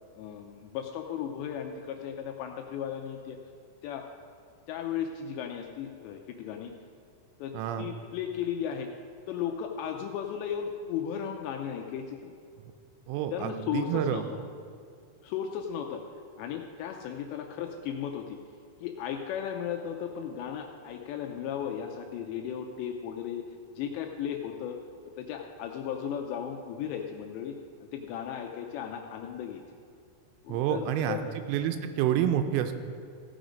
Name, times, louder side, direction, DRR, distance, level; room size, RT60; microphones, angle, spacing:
voice 1, 0.2-3.4 3.8-4.1 4.7-6.7 7.4-8.9 9.3-12.3 13.3-14.5 15.2-16.0 16.4-18.4 18.8-23.5 23.8-24.8 25.2-29.6 30.4-31.4, left 8 dB, 85° left, 3 dB, 2.5 m, -35 dB
voice 2, 7.5-7.9 13.1-14.2 30.5-31.2 31.5-32.7, right 10 dB, 85° right, 7 dB, 3.0 m, -28 dB
16.0 x 6.3 x 5.1 m, 2.2 s
omnidirectional pair, 5.6 m